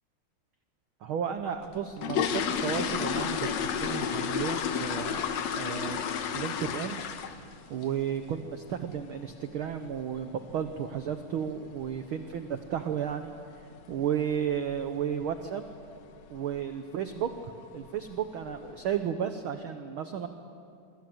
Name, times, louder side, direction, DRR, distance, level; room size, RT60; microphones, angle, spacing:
voice 1, 1.0-5.3 5.6-7.1 7.7-13.3 13.9-15.6 16.3-17.3 17.7-20.3, right 8 dB, 70° right, 7 dB, 1.3 m, -33 dB
sound 1, 1.6-7.6 7.8-8.1 8.5-8.6 8.9-9.1 9.5-9.7 9.9-10.0 10.6-10.7 11.0-11.1 11.6-12.0 12.2-12.3 12.7-12.9 13.3-13.4 13.8-13.9 14.5-14.8 15.1-15.4 15.8-15.9 16.3-16.4 17.2-17.3 17.7-18.2 18.7-18.8, left 7 dB, 65° left, 2.3 m, -31 dB
26.0 x 25.0 x 7.9 m, 2.5 s
omnidirectional pair, 3.5 m